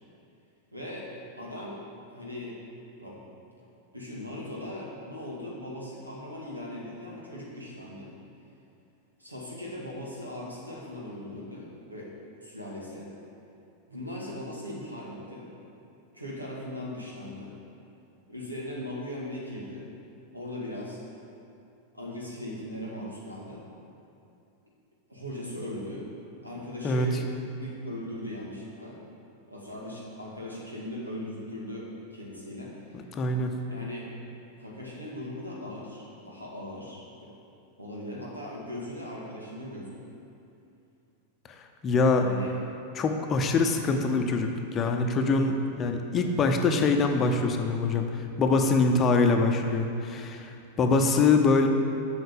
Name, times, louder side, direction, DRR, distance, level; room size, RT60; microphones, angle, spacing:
voice 1, 0.7-2.6 3.0-3.2 3.9-8.1 9.2-12.1 12.4-13.1 13.9-15.5 16.1-17.6 18.3-19.9 20.3-21.0 21.9-23.6 25.1-26.1 26.4-27.2 27.5-29.0 29.5-33.0 33.7-34.1 34.6-37.3 37.8-40.0 42.1-42.5, left 1 dB, 85° right, -4 dB, 2.1 m, -39 dB
voice 2, 32.9-33.6 41.8-42.3 42.9-51.7, left 3 dB, 25° left, 4 dB, 0.8 m, -24 dB
7.9 x 6.5 x 6.8 m, 2.7 s
figure-of-eight pair, 90°, 0 cm